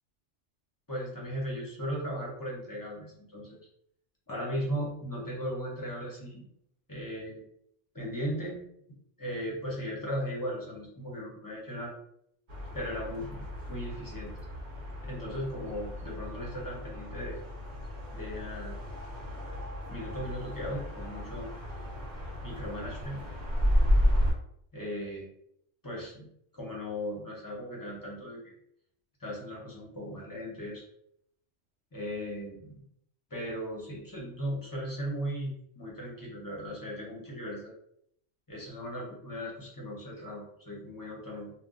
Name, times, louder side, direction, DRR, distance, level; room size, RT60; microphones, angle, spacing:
voice 1, 0.9-3.6 4.3-6.5 6.9-7.4 7.9-8.6 9.2-11.9 12.7-14.3 15.0-17.4 18.1-18.8 19.9-21.5 22.4-23.3 24.7-25.3 25.8-28.5 29.2-30.8 31.9-32.8 33.3-37.7 38.5-41.5, equal, 20° left, -4 dB, 0.6 m, -37 dB
sound 1, 12.5-24.3, equal, 45° right, 0.7 m, -32 dB
2.4 x 2.1 x 3.7 m, 0.72 s
omnidirectional pair, 1.3 m